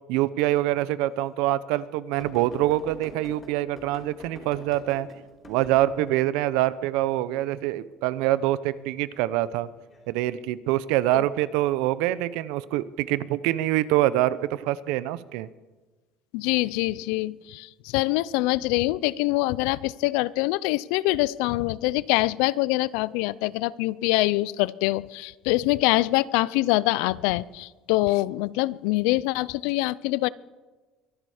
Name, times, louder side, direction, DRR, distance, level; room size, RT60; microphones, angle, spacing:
voice 1, 0.1-5.1 5.4-9.7 10.1-15.5, right 15 dB, 80° right, 17 dB, 0.6 m, -25 dB
sound 1, 2.2-6.1 9.6-10.0 11.1-11.2, left 1 dB, 25° left, 4.0 m, -44 dB
voice 2, 16.3-30.3, left 19 dB, 90° left, 21 dB, 0.4 m, -24 dB
23.5 x 11.5 x 4.9 m, 1.3 s
cardioid pair, 155°, 0 cm